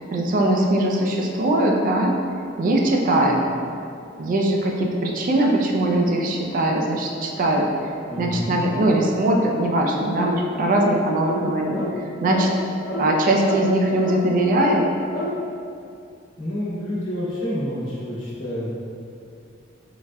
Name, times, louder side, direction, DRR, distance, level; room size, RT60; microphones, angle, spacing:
voice 1, 0.0-2.1 2.6-3.4 4.2-12.5 13.0-14.9, right 1 dB, 45° right, 0 dB, 0.3 m, -21 dB
voice 2, 8.1-8.6 16.4-18.7, equal, 90° left, -9 dB, 1.1 m, -28 dB
sound 1, 10.2-10.4 10.7-10.9 11.2-11.4 11.7-11.9 12.3-12.5 12.9-13.0 13.4-13.6 14.0-14.2 14.5-14.7 15.1-15.3, right 1 dB, 50° left, 0.6 m, -29 dB
3.9 x 2.1 x 2.3 m, 2.4 s
head